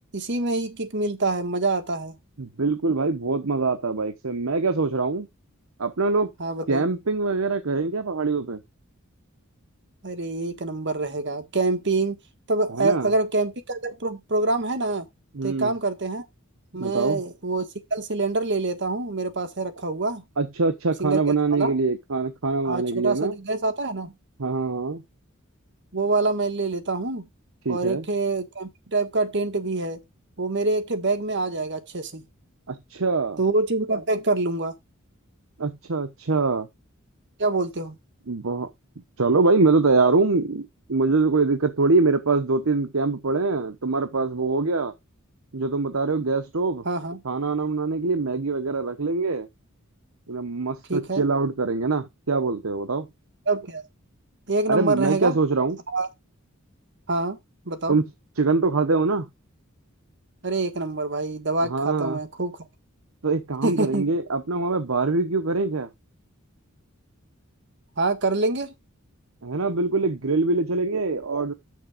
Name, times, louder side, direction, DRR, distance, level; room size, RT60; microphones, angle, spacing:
voice 1, 0.1-2.2 6.4-6.8 10.0-12.2 12.5-15.0 15.4-16.2 16.7-20.2 21.0-21.2 21.5-21.7 22.6-24.1 25.9-27.2 27.7-30.0 30.4-32.2 33.4-34.7 37.4-38.0 46.8-47.2 50.9-51.2 53.5-53.8 54.5-55.4 55.9-56.1 57.1-57.4 57.6-58.0 60.4-62.5 63.6-64.1 68.0-68.7, right 3 dB, 60° right, 1.6 m, -26 dB
voice 2, 2.4-5.3 5.8-6.3 6.7-8.6 12.7-13.1 15.3-15.7 16.8-17.2 20.4-23.4 24.4-25.0 27.6-28.0 32.7-33.4 35.6-36.7 38.3-38.7 39.2-44.9 45.5-46.8 47.2-49.5 50.3-53.1 54.7-55.8 57.9-58.1 58.4-59.3 61.6-62.2 63.2-65.9 69.4-71.5, right 3 dB, 75° right, 0.9 m, -24 dB
6.9 x 6.6 x 5.0 m
head